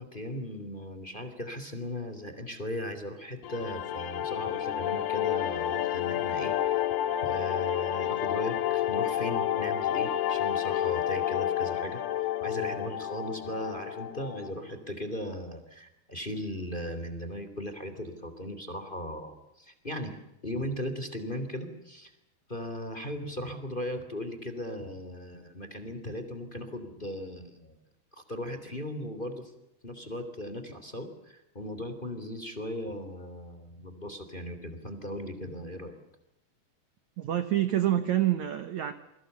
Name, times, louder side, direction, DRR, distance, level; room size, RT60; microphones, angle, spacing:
voice 1, 0.0-6.9 7.2-12.0 12.4-20.2 20.4-22.1 22.5-27.7 28.2-29.5 29.8-35.9, left 1 dB, 15° left, 9 dB, 2.9 m, -37 dB
sound 1, 3.4-14.5, left 12 dB, 75° left, 3.2 m, -30 dB
voice 2, 37.2-38.9, right 12 dB, 65° right, 11 dB, 2.0 m, -27 dB
28.0 x 24.0 x 7.0 m, 0.85 s
omnidirectional pair, 4.8 m